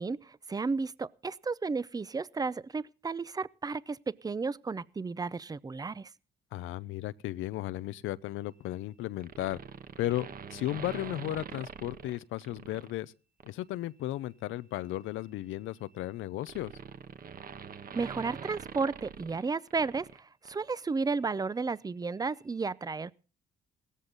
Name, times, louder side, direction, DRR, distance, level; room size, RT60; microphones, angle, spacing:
voice 1, 0.0-6.1 17.9-23.1, right 4 dB, 20° right, 0.6 m, -33 dB
voice 2, 6.5-9.6 10.0-13.1 13.4-16.7, left 15 dB, 85° left, 0.6 m, -35 dB
sound 1, 9.2-12.9 13.4-13.6 14.8-20.2 20.4-20.5, right 6 dB, 45° right, 1.2 m, -45 dB
17.0 x 14.0 x 3.9 m
cardioid pair, 90°, 20 cm